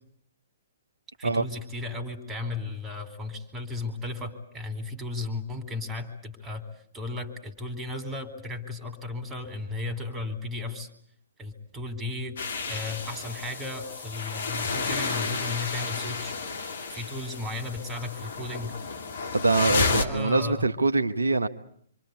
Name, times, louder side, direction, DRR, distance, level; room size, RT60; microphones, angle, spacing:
voice 1, 1.2-6.6 6.9-10.9 11.4-12.4 12.7-16.3 16.9-18.7 19.7-20.7, left 2 dB, 15° right, 9 dB, 4.2 m, -35 dB
sound 1, 12.4-20.0, left 4 dB, 60° left, 2.9 m, -31 dB
voice 2, 19.3-21.5, right 3 dB, 80° right, 8 dB, 1.1 m, -24 dB
26.5 x 25.5 x 8.4 m, 0.66 s
figure-of-eight pair, 120°, 0 cm